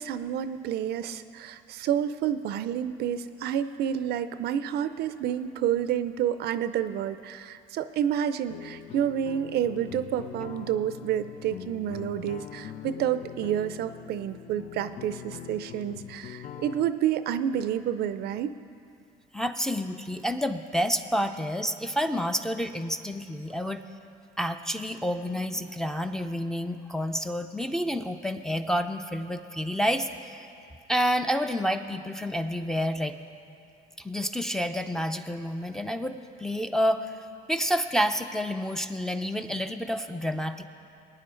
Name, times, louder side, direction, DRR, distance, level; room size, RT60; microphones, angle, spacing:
voice 1, 0.0-18.5, right 10 dB, 70° right, 12 dB, 0.5 m, -29 dB
sound 1, 8.5-16.9, left 11 dB, 50° left, 0.5 m, -43 dB
voice 2, 19.3-23.8 24.4-30.5 30.9-33.2 34.0-37.1 37.5-40.7, equal, 5° left, 4 dB, 0.5 m, -29 dB
20.5 x 9.5 x 3.8 m, 2.5 s
cardioid pair, 110°, 17 cm